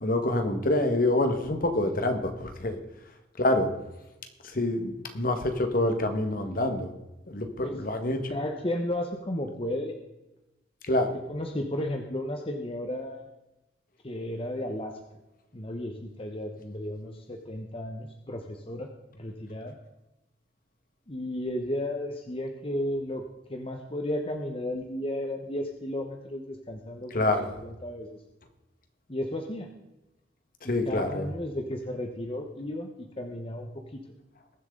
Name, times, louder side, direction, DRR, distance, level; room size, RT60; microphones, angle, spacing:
voice 1, 0.0-2.8 3.4-3.7 4.5-6.9 7.3-8.3 10.9-11.2 27.1-27.6 30.6-31.2, left 1 dB, 55° left, 7 dB, 1.6 m, -26 dB
voice 2, 8.3-9.9 11.3-13.2 14.0-14.9 15.5-18.9 19.1-19.7 21.1-23.2 23.5-28.2 29.1-29.7 30.6-34.0, left 1 dB, 35° left, 3 dB, 1.1 m, -34 dB
21.5 x 7.5 x 3.9 m, 0.97 s
head